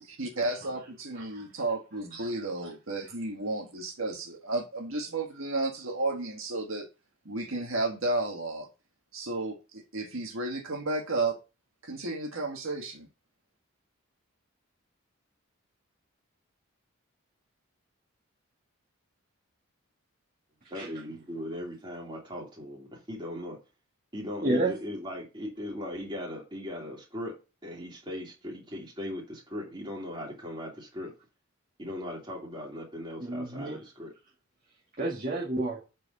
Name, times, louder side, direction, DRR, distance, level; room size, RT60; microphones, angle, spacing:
voice 1, 0.0-6.9 7.3-8.7 9.1-11.3 11.8-13.1, right 2 dB, 65° right, 1.8 m, -32 dB
voice 2, 2.1-2.5 20.7-20.9 24.4-24.7 33.2-33.8 35.0-35.8, right 2 dB, 35° right, 1.8 m, -30 dB
voice 3, 20.7-23.6 24.1-27.4 27.6-31.1 31.8-34.1, left 1 dB, 20° right, 2.9 m, -38 dB
8.3 x 4.6 x 5.5 m
head